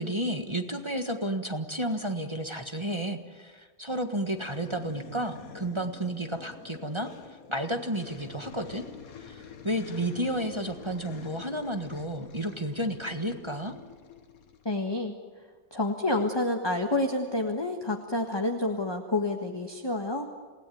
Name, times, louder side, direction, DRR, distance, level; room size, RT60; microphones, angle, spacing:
voice 1, 0.0-7.1 7.5-8.8 9.2-13.7, right 1 dB, 15° right, 5 dB, 1.3 m, -32 dB
sound 1, 4.3-14.7, left 6 dB, 55° left, 1.7 m, -47 dB
voice 2, 14.6-15.1 15.7-20.3, left 2 dB, 15° left, 3 dB, 1.4 m, -28 dB
28.0 x 18.0 x 9.3 m, 1.5 s
omnidirectional pair, 2.0 m